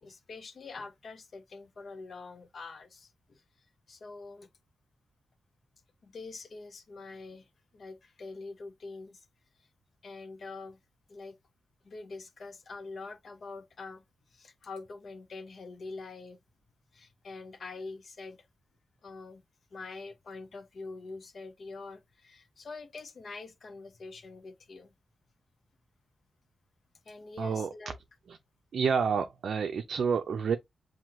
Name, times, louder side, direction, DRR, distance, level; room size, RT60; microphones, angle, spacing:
voice 1, 0.0-3.4 3.9-4.5 6.0-7.5 7.7-9.3 10.0-10.8 11.1-11.4 11.8-14.0 14.3-16.4 16.9-18.5 19.0-19.4 19.7-24.9 27.1-28.0, left 3 dB, 60° left, 0.8 m, -45 dB
voice 2, 27.4-27.7 28.3-28.4 28.7-30.6, right 6 dB, 70° right, 0.4 m, -29 dB
5.8 x 2.7 x 2.8 m
cardioid pair, 65°, 0 cm